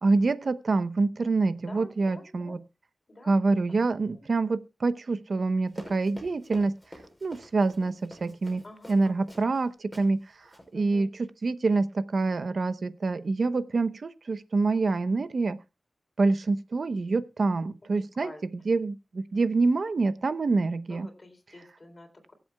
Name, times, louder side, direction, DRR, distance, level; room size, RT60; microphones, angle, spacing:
voice 1, 0.0-2.6 3.3-6.7 7.2-8.6 8.9-10.2 10.7-15.6 16.2-18.3 18.6-21.1, right 3 dB, 70° right, 13 dB, 0.8 m, -26 dB
voice 2, 1.7-2.6 3.1-3.3 3.7-4.2 8.6-9.3 10.7-11.1 18.2-18.4 20.9-22.3, left 1 dB, 45° left, 4 dB, 3.7 m, -48 dB
Run, 5.7-9.6 9.9-10.1 10.4-10.7, left 1 dB, 10° left, 5.9 m, -47 dB
23.5 x 7.8 x 2.3 m, 0.27 s
cardioid pair, 55°, 0 cm